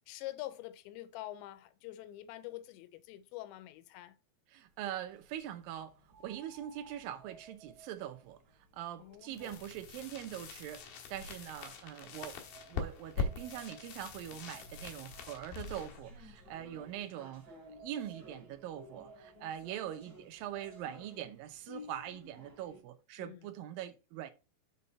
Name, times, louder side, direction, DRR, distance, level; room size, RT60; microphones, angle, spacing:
voice 1, 0.1-4.1 9.0-9.6 16.6-16.9 19.3-19.5 23.2-23.4, left 15 dB, 85° left, 2.9 m, -46 dB
sound 1, 3.5-3.6 6.1-11.3 12.0-15.7 16.7-21.3, right 4 dB, 50° right, 3.1 m, -60 dB
voice 2, 4.5-5.9 6.2-8.4 8.7-12.4 12.7-24.3, right 11 dB, 80° right, 2.0 m, -43 dB
sound 2, 4.7-22.8, left 2 dB, 25° right, 2.9 m, -59 dB
sound 3, 9.3-17.1, left 5 dB, 65° left, 2.7 m, -43 dB
6.9 x 5.6 x 4.2 m
omnidirectional pair, 5.1 m